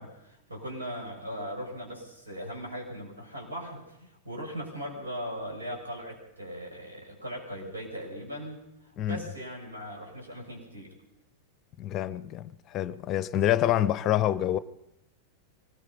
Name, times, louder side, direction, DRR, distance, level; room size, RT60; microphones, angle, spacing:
voice 1, 0.0-10.9, equal, 75° right, 6.8 m, -39 dB
voice 2, 11.8-14.6, left 12 dB, 35° left, 0.7 m, -27 dB
24.5 x 20.0 x 5.6 m
figure-of-eight pair, 90°, 0 cm